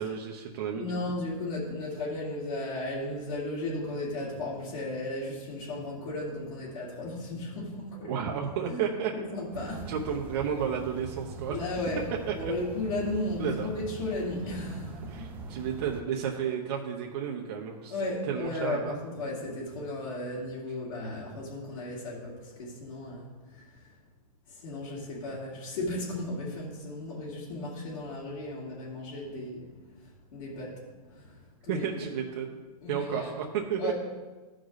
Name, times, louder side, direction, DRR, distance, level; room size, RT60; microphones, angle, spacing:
voice 1, 0.0-0.8 8.1-9.1 9.9-11.6 12.3-12.5 13.4-13.7 15.1-18.0 18.3-18.9 31.7-32.6 32.9-33.9, right 8 dB, 40° right, -1 dB, 0.9 m, -32 dB
voice 2, 0.7-8.1 8.7-8.8 9.1-9.9 11.5-12.0 12.4-15.5 17.9-23.9 24.5-29.7 30.0-30.8 31.1-31.4 31.6-32.0 32.8-33.3 33.8-33.9, left 2 dB, 50° left, -9 dB, 2.7 m, -35 dB
sound 1, 9.5-16.0, right 4 dB, 10° right, 0.3 m, -42 dB
14.0 x 4.9 x 4.0 m, 1.2 s
hypercardioid pair, 160°, 20 cm